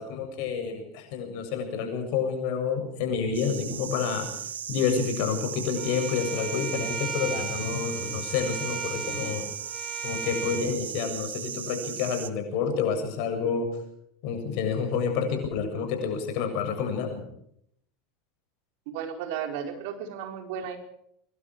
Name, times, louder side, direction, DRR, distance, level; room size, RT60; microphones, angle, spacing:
voice 1, 0.0-4.3 4.7-9.5 10.0-13.8 14.2-17.3, left 6 dB, 55° left, 5 dB, 7.6 m, -29 dB
sound 1, 3.3-12.3, right 9 dB, 75° right, 1.1 m, -37 dB
Bowed string instrument, 5.8-10.6, right 5 dB, ahead, 5.9 m, -36 dB
voice 2, 18.9-20.8, right 8 dB, 60° right, 5 dB, 4.6 m, -34 dB
24.5 x 23.0 x 4.9 m, 0.69 s
figure-of-eight pair, 80°, 0 cm